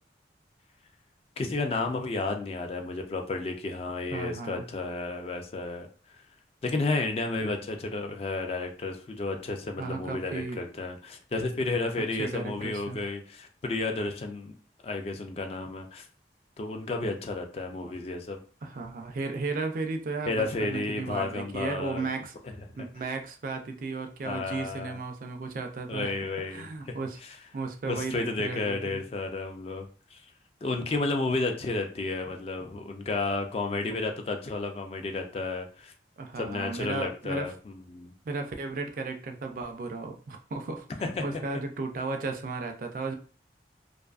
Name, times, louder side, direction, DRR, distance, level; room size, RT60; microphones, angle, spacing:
voice 1, 1.4-5.9 6.6-14.5 14.8-16.1 16.6-18.4 20.3-22.1 22.4-22.5 24.2-25.0 25.9-27.0 27.2-27.4 27.9-29.9 30.1-30.2 30.6-35.9 36.4-38.1 41.0-41.4, left 3 dB, 35° left, 4 dB, 0.3 m, -32 dB
voice 2, 4.1-4.6 9.8-10.6 12.2-13.0 18.6-22.3 22.8-26.1 26.5-27.2 27.5-29.0 36.2-37.5 38.3-40.8 41.2-43.1, right 3 dB, 50° right, 5 dB, 0.3 m, -34 dB
2.5 x 2.3 x 2.3 m, 0.39 s
head